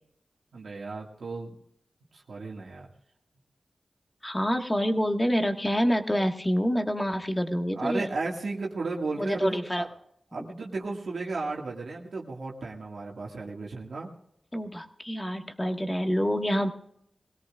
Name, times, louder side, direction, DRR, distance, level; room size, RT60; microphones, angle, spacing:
voice 1, 0.5-1.6 2.1-2.9 7.8-9.9 10.3-14.1, right 3 dB, 85° right, -1 dB, 2.1 m, -34 dB
voice 2, 4.2-8.1 9.2-9.8 14.5-16.7, equal, 15° left, 4 dB, 1.8 m, -27 dB
22.0 x 17.0 x 2.5 m, 0.72 s
wide cardioid pair, 60°, 0 cm